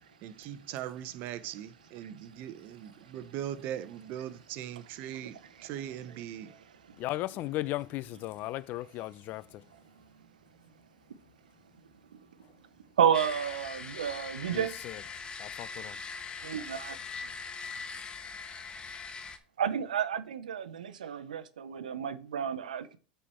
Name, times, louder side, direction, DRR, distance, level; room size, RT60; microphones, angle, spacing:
voice 1, 0.2-5.4 5.6-6.6, right 11 dB, 55° right, 0.9 m, -40 dB
voice 2, 5.0-5.7 6.4-7.0 13.0-14.7 16.4-17.0 19.6-23.0, right 8 dB, 90° right, 0.7 m, -31 dB
voice 3, 7.0-9.6 14.5-15.0 15.4-16.0, left 16 dB, 50° left, 0.5 m, -36 dB
sound 1, 13.1-19.4, left 5 dB, 25° left, 1.1 m, -41 dB
9.2 x 4.5 x 4.4 m
hypercardioid pair, 100°, 4 cm